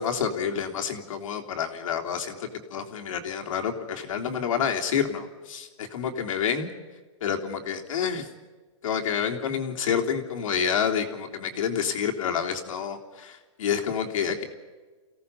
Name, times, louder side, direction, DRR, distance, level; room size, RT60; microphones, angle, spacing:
voice 1, 0.0-6.7 7.2-8.3 8.8-14.4, left 7 dB, 65° left, 3 dB, 3.4 m, -28 dB
29.5 x 17.5 x 5.6 m, 1.4 s
hypercardioid pair, 150°, 18 cm